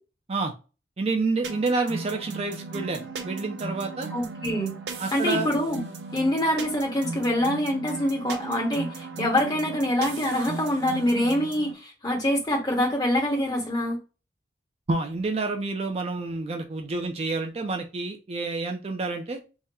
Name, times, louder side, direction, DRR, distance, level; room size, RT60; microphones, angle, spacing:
voice 1, 1.0-4.1 5.0-5.5 14.9-19.4, right 3 dB, 35° right, 3 dB, 0.5 m, -28 dB
sound 1, 1.4-11.7, right 3 dB, 75° right, 0.7 m, -37 dB
voice 2, 4.1-4.8 5.1-5.8 6.1-14.0, left 1 dB, 20° left, 0 dB, 1.2 m, -25 dB
3.6 x 2.1 x 4.1 m, 0.31 s
head